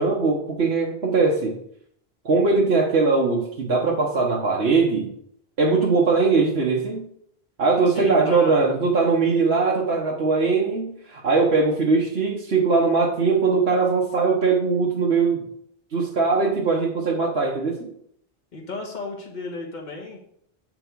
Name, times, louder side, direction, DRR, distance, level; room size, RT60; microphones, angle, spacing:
voice 1, 0.0-1.6 2.2-5.1 5.6-7.1 7.6-15.4 15.9-17.9, right 4 dB, 80° right, -2 dB, 1.4 m, -21 dB
voice 2, 7.9-8.7 18.5-20.2, left 3 dB, 45° left, 1 dB, 1.5 m, -34 dB
8.1 x 6.0 x 4.6 m, 0.70 s
omnidirectional pair, 1.0 m